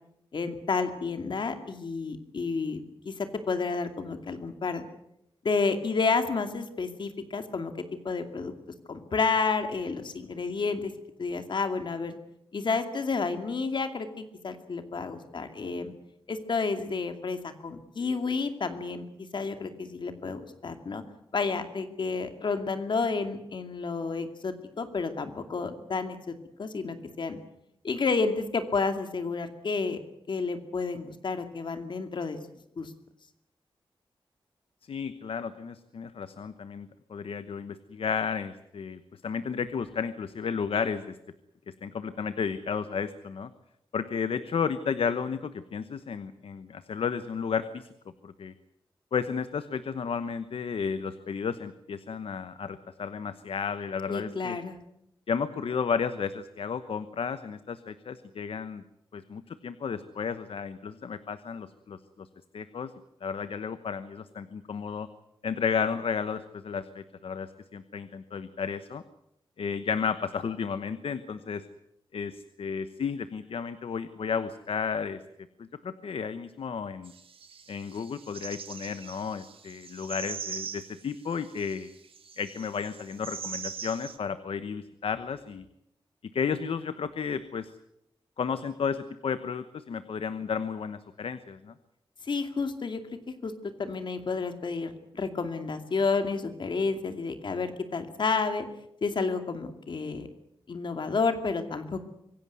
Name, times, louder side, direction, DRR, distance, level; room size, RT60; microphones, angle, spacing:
voice 1, 0.3-4.8 5.4-7.7 8.0-8.5 8.9-10.9 11.2-12.2 12.5-15.9 16.3-21.0 21.3-26.2 26.6-27.4 27.8-30.0 30.3-32.4 32.8-32.9 54.1-54.8 92.2-98.7 99.0-100.3 100.7-102.1, left 4 dB, 60° left, 8 dB, 2.4 m, -30 dB
voice 2, 34.8-41.1 41.7-43.5 43.9-47.9 48.2-48.5 49.1-54.6 55.3-58.8 59.1-62.3 62.5-62.9 63.2-65.1 65.4-69.0 69.6-71.6 72.1-75.2 75.6-77.1 77.7-81.9 82.4-85.7 86.3-87.7 88.4-91.7, left 6 dB, 90° left, 12 dB, 1.1 m, -33 dB
sound 1, 77.0-84.2, right 6 dB, 85° right, 1.9 m, -42 dB
25.5 x 17.0 x 9.4 m, 0.80 s
wide cardioid pair, 175°, 9 cm